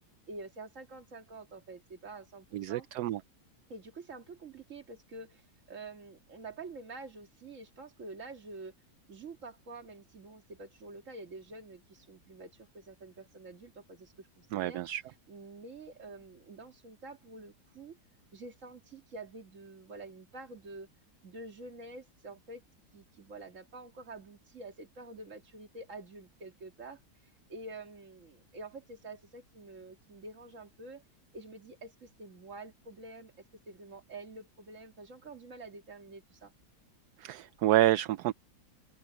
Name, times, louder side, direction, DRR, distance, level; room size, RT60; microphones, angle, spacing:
voice 1, 0.3-2.9 3.7-5.4 5.7-8.7 9.1-14.8 15.3-18.0 18.3-20.9 21.2-22.6 22.9-27.0 27.5-31.0 31.3-36.5, right 3 dB, 50° right, 2.4 m, -47 dB
voice 2, 2.5-3.2 14.5-15.0 37.2-38.3, right 14 dB, 75° right, 1.1 m, -28 dB
open air
omnidirectional pair, 1.7 m